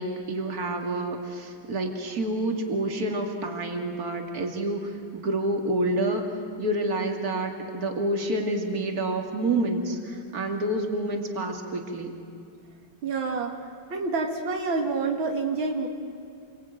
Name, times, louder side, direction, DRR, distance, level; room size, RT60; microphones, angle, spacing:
voice 1, 0.0-12.2, right 1 dB, 50° right, 3 dB, 2.9 m, -28 dB
voice 2, 13.0-13.6 13.9-15.9, right 4 dB, 85° right, 3 dB, 2.5 m, -27 dB
28.5 x 23.0 x 9.0 m, 2.4 s
omnidirectional pair, 2.1 m